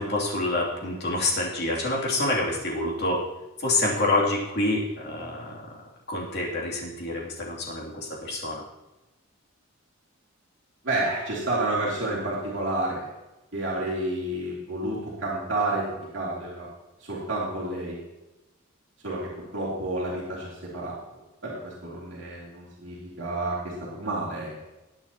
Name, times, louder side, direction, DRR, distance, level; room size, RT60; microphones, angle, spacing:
voice 1, 0.0-3.2 3.6-5.6 6.1-8.6, left 2 dB, 50° left, -3 dB, 2.9 m, -27 dB
voice 2, 10.8-13.1 13.5-16.7 17.0-18.0 19.0-21.0 21.4-24.7, right 2 dB, 60° right, -6 dB, 2.9 m, -30 dB
20.0 x 8.6 x 3.0 m, 1.0 s
head